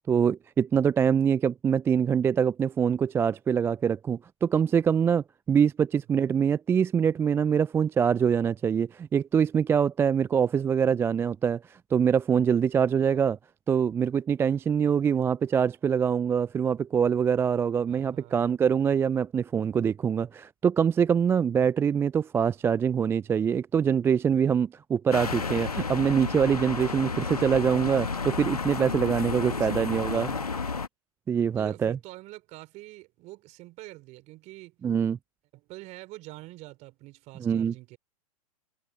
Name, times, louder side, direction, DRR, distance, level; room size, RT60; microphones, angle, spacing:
voice 1, 0.1-13.4 13.7-30.3 31.3-32.0 34.8-35.2 37.4-37.7, right 7 dB, 15° right, 0.4 m, -24 dB
voice 2, 17.9-18.5 29.1-30.5 31.6-34.8 35.5-38.0, right 20 dB, 40° right, 3.6 m, -46 dB
sound 1, 25.1-30.9, left 4 dB, 85° left, 1.9 m, -31 dB
figure-of-eight pair, 100°, 19 cm